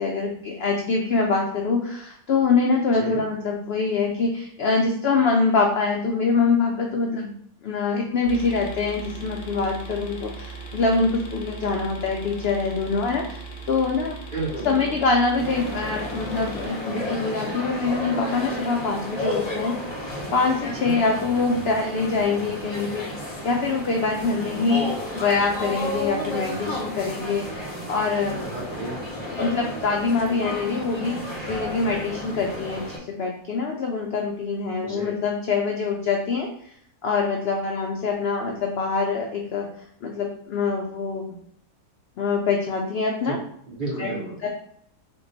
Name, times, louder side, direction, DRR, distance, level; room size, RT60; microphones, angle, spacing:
voice 1, 0.0-7.3 7.6-14.1 14.6-19.7 20.3-24.9 25.1-28.4 29.3-36.7 37.0-39.7 40.0-41.3 42.2-43.4 44.0-44.1 44.4-44.5, left 4 dB, 85° left, 1 dB, 0.5 m, -24 dB
voice 2, 2.9-3.2 14.3-14.8 20.8-21.0 28.4-29.0 34.8-35.2 43.3-43.4 43.7-44.4, right 2 dB, 50° right, -3 dB, 0.6 m, -31 dB
sound 1, 8.2-16.7, right 4 dB, 55° left, 0.9 m, -38 dB
sound 2, 15.4-33.0, left 1 dB, 25° left, 0.7 m, -32 dB
3.7 x 2.2 x 3.8 m, 0.67 s
omnidirectional pair, 1.6 m